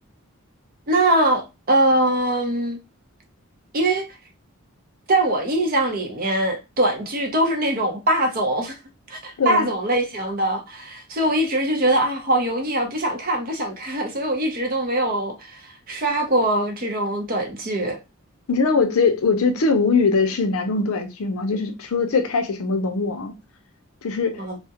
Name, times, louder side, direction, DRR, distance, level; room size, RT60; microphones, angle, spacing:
voice 1, 0.9-2.8 3.7-4.1 5.1-8.7 9.1-15.6 15.9-18.0 24.4-24.6, right 1 dB, 40° right, 0.6 m, -22 dB
voice 2, 9.4-9.7 18.5-23.3 24.0-24.4, left 4 dB, 75° left, 0.5 m, -21 dB
2.3 x 2.0 x 2.8 m
head